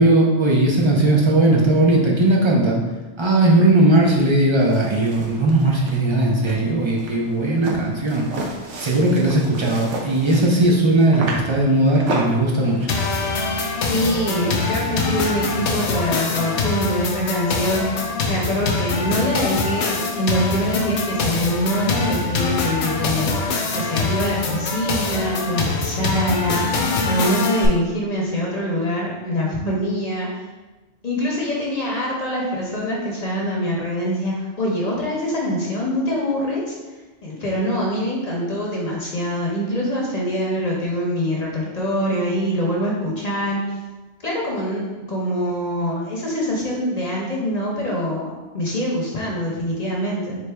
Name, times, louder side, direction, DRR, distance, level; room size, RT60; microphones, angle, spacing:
voice 1, 0.0-2.8 3.2-8.3 8.8-12.8, right 2 dB, 40° right, -2 dB, 0.4 m, -17 dB
sound 1, 4.6-12.9, right 2 dB, 80° right, 1.0 m, -33 dB
sound 2, 12.9-27.7, left 3 dB, 75° left, 0.9 m, -24 dB
voice 2, 13.9-30.5 31.0-36.8 37.2-43.8 44.2-50.4, equal, 40° left, -3 dB, 0.8 m, -24 dB
4.0 x 3.3 x 3.3 m, 1.2 s
omnidirectional pair, 1.2 m